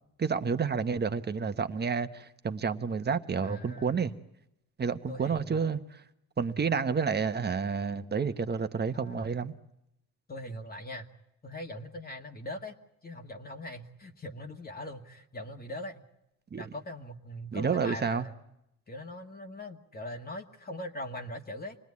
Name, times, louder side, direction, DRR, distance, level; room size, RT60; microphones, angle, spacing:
voice 1, 0.2-4.1 4.8-6.0 6.4-9.5 16.5-16.6 17.5-18.3, right 5 dB, 35° right, 1.3 m, -30 dB
voice 2, 3.4-4.1 5.1-5.6 6.5-6.6 8.9-9.4 10.3-11.1 11.4-12.7 13.0-16.0 16.6-18.3 18.9-21.8, left 1 dB, 30° left, 1.8 m, -41 dB
27.0 x 19.5 x 9.7 m
cardioid pair, 90°, 30 cm